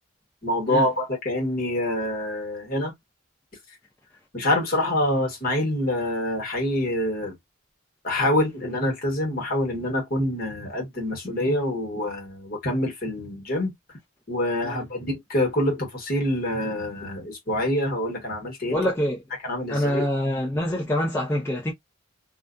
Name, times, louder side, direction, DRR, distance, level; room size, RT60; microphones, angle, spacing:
voice 1, 0.4-2.9 4.3-7.3 8.0-13.7 14.3-18.8 19.4-20.0, left 1 dB, 45° left, 1.2 m, -26 dB
voice 2, 18.7-19.2 19.7-21.7, left 1 dB, 15° left, 0.4 m, -25 dB
2.4 x 2.2 x 2.4 m
head